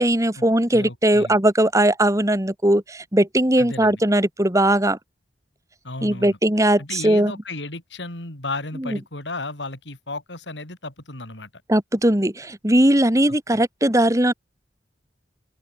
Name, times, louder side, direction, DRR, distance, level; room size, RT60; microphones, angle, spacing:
voice 1, 0.0-5.0 6.0-7.3 8.8-9.0 11.7-14.3, right 1 dB, 20° right, 2.5 m, -19 dB
voice 2, 0.7-1.4 3.6-4.0 5.8-6.4 6.8-11.5 13.5-13.6, left 2 dB, 90° left, 6.0 m, -34 dB
open air
head